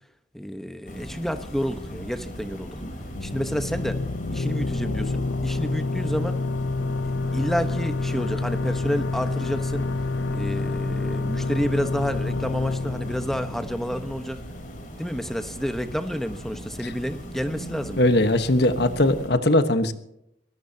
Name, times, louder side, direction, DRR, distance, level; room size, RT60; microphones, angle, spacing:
voice 1, 0.3-2.8 3.2-4.0 4.3-6.4 7.3-9.8 10.3-14.4 15.0-18.0, equal, ahead, 7 dB, 1.1 m, -29 dB
sound 1, 0.9-19.3, equal, 45° left, 4.1 m, -38 dB
sound 2, 3.1-14.5, left 3 dB, 75° left, 0.6 m, -28 dB
voice 2, 18.0-19.9, left 1 dB, 60° left, 9 dB, 1.3 m, -20 dB
23.0 x 17.5 x 2.9 m, 0.80 s
head